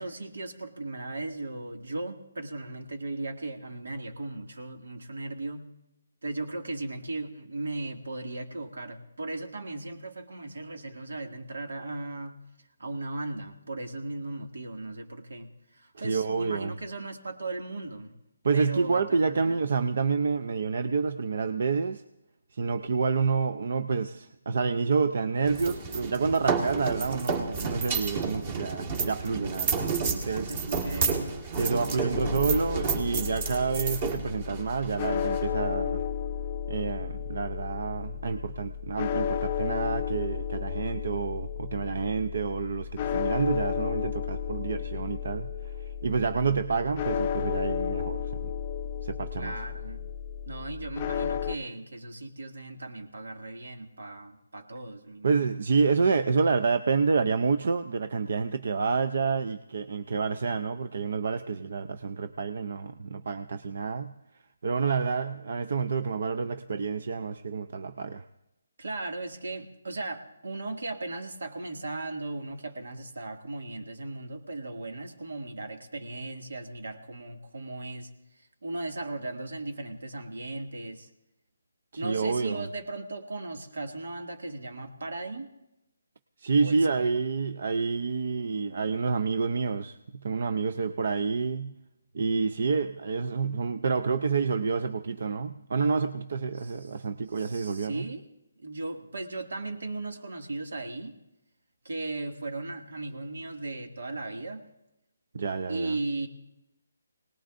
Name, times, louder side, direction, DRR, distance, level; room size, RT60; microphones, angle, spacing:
voice 1, 0.0-5.7 6.2-12.4 12.8-18.1 18.5-19.6 30.1-31.5 31.9-33.0 49.4-50.0 50.4-55.5 68.8-78.1 78.4-81.1 82.0-85.5 86.5-87.2 96.6-97.0 97.3-98.3 98.6-101.1 101.8-104.6 105.7-106.3, right 2 dB, 80° right, 4 dB, 2.1 m, -37 dB
voice 2, 16.0-16.7 18.4-22.0 22.5-30.5 31.6-36.0 36.7-45.7 46.0-48.5 49.0-49.6 55.2-64.1 64.6-68.2 81.9-82.7 86.4-91.7 92.1-98.1 105.3-105.9, right 5 dB, 55° right, 11 dB, 0.5 m, -28 dB
sound 1, 25.5-35.4, right 5 dB, 30° right, 1.8 m, -31 dB
sound 2, 32.1-51.6, left 8 dB, 25° left, 0.5 m, -33 dB
25.5 x 19.0 x 2.6 m, 0.88 s
hypercardioid pair, 170°, 0 cm